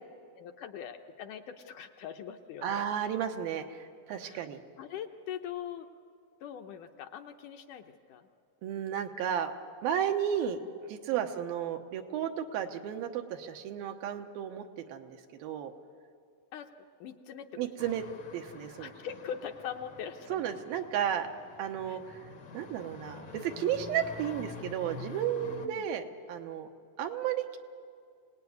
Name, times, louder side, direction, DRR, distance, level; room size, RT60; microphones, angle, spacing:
voice 1, 0.4-2.9 4.2-4.5 4.8-5.9 6.4-8.3 11.1-11.3 16.5-16.7 17.0-17.7 18.8-20.4 21.9-22.0 25.6-25.8, left 8 dB, 70° left, 5 dB, 2.2 m, -42 dB
voice 2, 2.6-4.6 8.6-9.5 9.8-10.6 10.9-15.7 17.6-18.0 18.3-18.9 20.3-21.3 21.6-22.2 22.5-26.0 26.3-26.7 27.0-27.6, right 9 dB, 85° right, 5 dB, 3.0 m, -33 dB
sound 1, 17.8-25.7, left 4 dB, 55° left, 1.2 m, -47 dB
25.5 x 19.0 x 9.5 m, 2.2 s
omnidirectional pair, 4.1 m